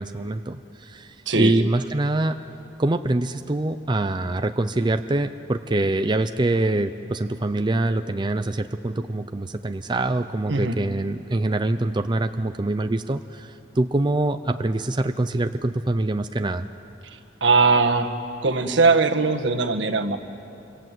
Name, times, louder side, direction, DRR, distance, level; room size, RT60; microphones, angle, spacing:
voice 1, 0.0-2.4 2.8-16.7, right 2 dB, 25° right, 8 dB, 0.6 m, -24 dB
voice 2, 17.4-18.1 18.4-20.2, right 4 dB, 75° right, 5 dB, 1.5 m, -20 dB
26.5 x 25.5 x 7.7 m, 2.7 s
head